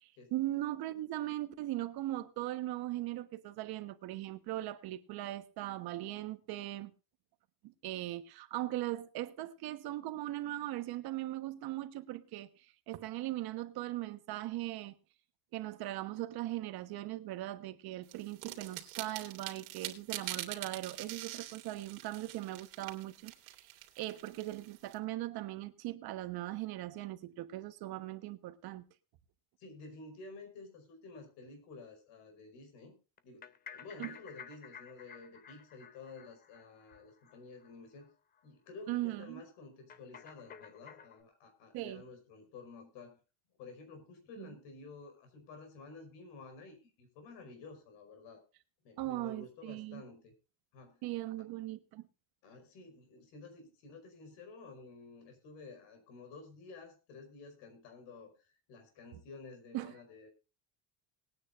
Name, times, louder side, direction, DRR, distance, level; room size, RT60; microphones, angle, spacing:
voice 1, 0.0-6.9 7.6-12.5 12.9-14.9 15.5-23.7 24.0-28.8 34.0-34.1 38.9-39.4 41.7-42.0 44.4-44.5 49.0-50.0 51.0-52.0 59.7-59.9, right 15 dB, 50° right, 1.3 m, -39 dB
sound 1, 18.1-24.9, right 15 dB, 80° right, 2.8 m, -44 dB
voice 2, 29.6-33.0 33.2-38.1 38.4-43.2 43.6-48.4 48.8-50.3 50.7-51.0 51.4-51.5 52.4-58.3 58.7-60.3, left 3 dB, 60° left, 5.1 m, -52 dB
sound 2, 33.2-37.7 38.0-38.1 38.4-38.5 38.7-38.8 39.9-41.2, left 7 dB, 20° left, 0.5 m, -52 dB
20.5 x 9.6 x 2.6 m
cardioid pair, 165°, 49 cm